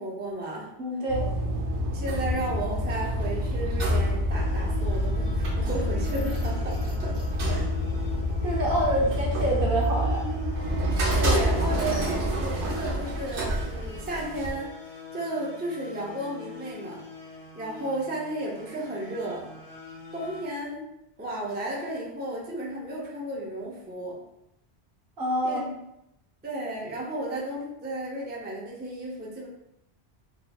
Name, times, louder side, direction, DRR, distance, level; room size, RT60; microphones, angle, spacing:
voice 1, 0.0-0.7 1.9-7.2 7.5-7.7 8.6-8.7 11.1-17.0 17.5-19.5 20.1-20.8 21.2-24.2 25.4-25.7 26.4-29.5, right 1 dB, 15° right, -4 dB, 0.5 m, -34 dB
voice 2, 0.8-1.3 8.4-10.2 25.2-25.7, right 1 dB, 55° right, -2 dB, 0.9 m, -27 dB
sound 1, 1.1-14.5, equal, 90° right, 1.1 m, -27 dB
sound 2, 4.3-20.4, left 6 dB, 55° left, 1.0 m, -44 dB
4.1 x 2.7 x 2.3 m, 0.84 s
omnidirectional pair, 1.1 m